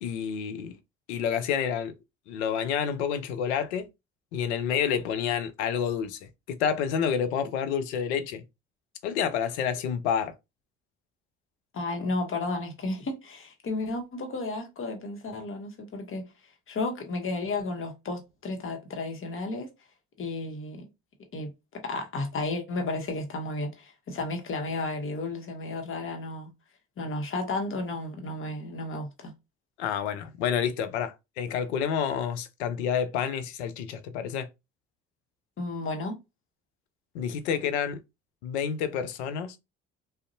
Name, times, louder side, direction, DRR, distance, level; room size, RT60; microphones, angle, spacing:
voice 1, 0.0-0.7 1.1-1.9 2.3-3.9 4.3-8.4 9.0-10.3 29.8-34.5 37.1-38.0 38.4-39.6, left 8 dB, 85° left, 0.5 m, -29 dB
voice 2, 11.7-16.3 16.7-19.7 20.2-20.9 21.3-26.5 27.0-29.3 35.6-36.2, left 2 dB, 40° left, 1.0 m, -33 dB
2.5 x 2.1 x 2.6 m
hypercardioid pair, 55°, 32 cm